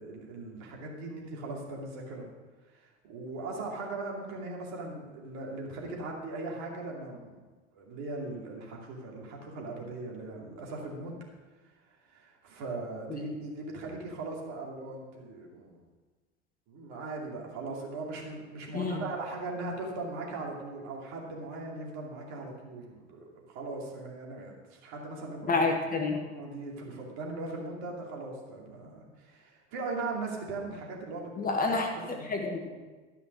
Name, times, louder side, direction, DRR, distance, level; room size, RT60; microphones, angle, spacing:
voice 1, 0.0-2.3 2.7-7.4 7.7-11.1 12.1-15.8 16.7-25.6 26.3-31.8 32.1-32.3, right 3 dB, 50° right, -1 dB, 2.6 m, -39 dB
voice 2, 25.5-26.2 31.4-32.7, left 3 dB, 25° left, 2 dB, 1.5 m, -29 dB
13.0 x 5.7 x 6.2 m, 1.3 s
figure-of-eight pair, 75°, 35 cm